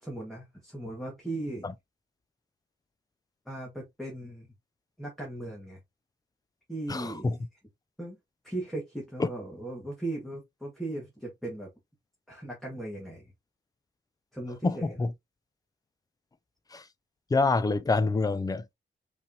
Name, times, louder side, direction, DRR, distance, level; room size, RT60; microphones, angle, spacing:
voice 1, 0.0-1.7 3.4-4.5 5.0-5.8 6.7-7.3 8.0-8.2 8.4-11.7 12.3-13.3 14.3-15.0, right 2 dB, ahead, 1.6 m, -37 dB
voice 2, 6.9-7.4 9.2-9.3 14.6-15.1 16.7-16.8 17.3-18.7, left 3 dB, 20° left, 0.4 m, -26 dB
5.5 x 3.3 x 2.7 m
wide cardioid pair, 170°, 20 cm